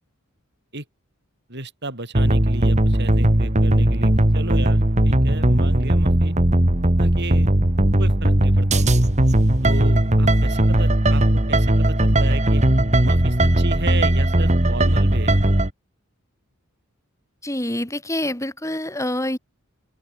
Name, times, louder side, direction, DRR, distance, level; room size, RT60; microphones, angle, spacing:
voice 1, 1.5-6.4 7.0-7.5 8.0-9.1 9.6-12.6 13.0-15.4, right 2 dB, 50° right, 7.3 m, -33 dB
sound 1, 2.1-15.7, right 1 dB, 35° right, 2.1 m, -18 dB
voice 2, 17.4-19.4, left 1 dB, 15° left, 5.0 m, -26 dB
open air
head